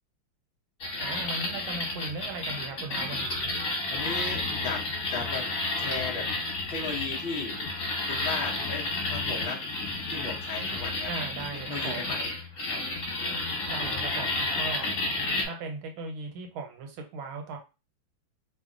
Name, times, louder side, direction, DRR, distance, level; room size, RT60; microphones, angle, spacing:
sound 1, 0.8-15.5, left 2 dB, 45° left, 1.4 m, -31 dB
voice 1, 1.0-3.5 11.1-12.2 13.7-14.9 15.4-17.6, right 4 dB, 80° right, 4 dB, 1.6 m, -38 dB
voice 2, 3.9-5.5 5.8-6.3 6.7-7.6 8.1-9.7 10.1-11.1 11.4-12.3 12.7-12.8 14.8-14.9, left 4 dB, 85° left, -1 dB, 0.5 m, -36 dB
3.4 x 2.2 x 3.7 m, 0.29 s
omnidirectional pair, 2.3 m